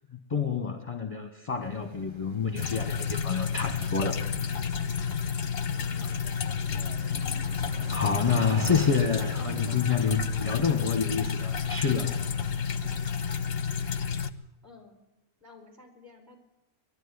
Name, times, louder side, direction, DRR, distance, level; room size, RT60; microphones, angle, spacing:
voice 1, 0.3-4.2 7.9-12.2, left 6 dB, 25° left, 6 dB, 1.2 m, -28 dB
sound 1, 1.6-13.6, right 2 dB, 25° right, 0.6 m, -46 dB
sound 2, 2.5-14.3, left 6 dB, 45° left, 1.0 m, -30 dB
voice 2, 6.0-6.6 8.7-9.8 14.6-15.0 15.4-16.4, left 3 dB, 10° right, 3 dB, 4.6 m, -51 dB
21.5 x 12.5 x 9.7 m, 0.96 s
omnidirectional pair, 1.6 m